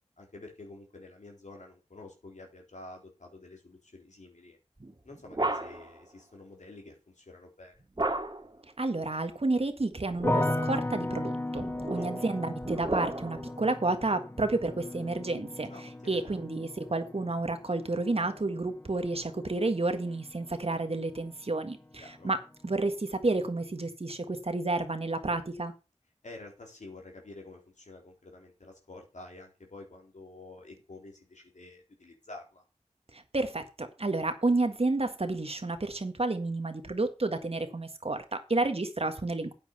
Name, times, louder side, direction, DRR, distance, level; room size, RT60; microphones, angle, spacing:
voice 1, 0.2-4.6 5.0-7.7 11.9-12.3 15.7-16.4 22.0-22.3 26.2-32.6, left 2 dB, 85° left, 1 dB, 3.9 m, -49 dB
sound 1, 4.8-6.0 8.0-8.6 9.9-10.8 11.6-13.5, right 2 dB, 40° right, 2.0 m, -33 dB
voice 2, 8.8-15.7 16.1-25.7 33.1-39.5, right 2 dB, 55° right, 8 dB, 1.6 m, -30 dB
sound 2, 10.2-21.3 21.6-22.3, left 1 dB, 20° left, 0.6 m, -37 dB
9.0 x 8.2 x 5.6 m, 0.30 s
wide cardioid pair, 55°, 12 cm